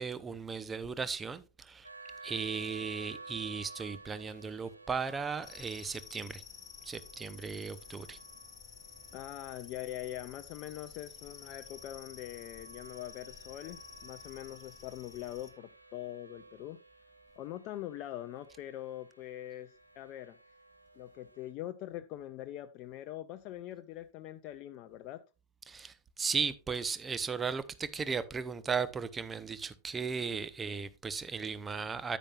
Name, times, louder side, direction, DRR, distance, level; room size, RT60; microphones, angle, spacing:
voice 1, 0.0-1.9 2.2-6.4 6.8-8.2 25.7-32.2, right 5 dB, 15° right, 0.7 m, -36 dB
sound 1, 1.8-21.5, right 3 dB, 85° right, 0.9 m, -54 dB
sound 2, 5.4-15.5, left 8 dB, 20° left, 1.3 m, -52 dB
voice 2, 9.1-16.8 17.4-20.4 21.0-25.2, left 13 dB, 40° left, 0.5 m, -43 dB
9.8 x 9.2 x 2.4 m
figure-of-eight pair, 90°, 0 cm